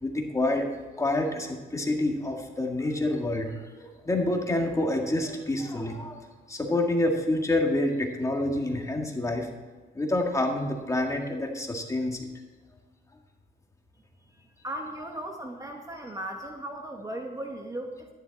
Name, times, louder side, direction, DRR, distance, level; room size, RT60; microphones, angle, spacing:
voice 1, 0.0-3.5 3.8-6.2 6.5-9.5 10.0-12.2, left 1 dB, 15° left, 2 dB, 1.9 m, -27 dB
voice 2, 14.4-18.1, right 1 dB, 20° right, 3 dB, 1.1 m, -37 dB
12.5 x 10.5 x 4.1 m, 1.4 s
cardioid pair, 110°, 18 cm